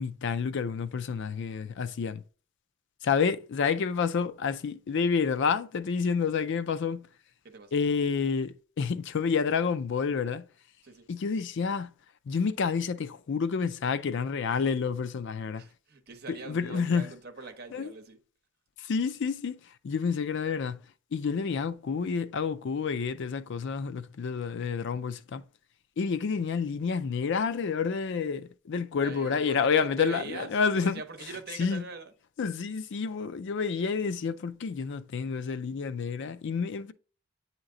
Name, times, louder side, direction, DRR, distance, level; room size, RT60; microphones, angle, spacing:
voice 1, 0.0-2.2 3.0-7.1 7.7-10.4 11.1-11.9 12.3-15.6 16.5-17.0 17.7-17.9 18.8-19.6 19.8-20.8 21.1-25.4 26.0-31.0 31.6-31.8 32.4-36.9, left 5 dB, 60° left, 0.4 m, -29 dB
voice 2, 7.4-7.8 10.8-11.1 15.6-18.2 29.0-32.1, right 4 dB, 50° right, 0.9 m, -42 dB
8.8 x 2.9 x 3.8 m
head